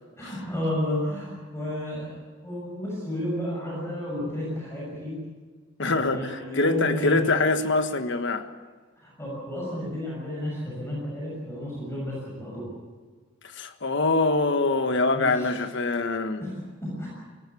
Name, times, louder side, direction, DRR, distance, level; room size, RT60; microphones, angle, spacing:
voice 1, 0.2-2.2 2.4-5.2 5.9-7.2 9.0-12.7 14.8-15.6 16.4-17.1, left 1 dB, 15° left, 6.8 m, -32 dB
voice 2, 5.8-8.5 13.6-16.4, left 3 dB, 60° left, 1.4 m, -24 dB
22.0 x 19.0 x 8.5 m
head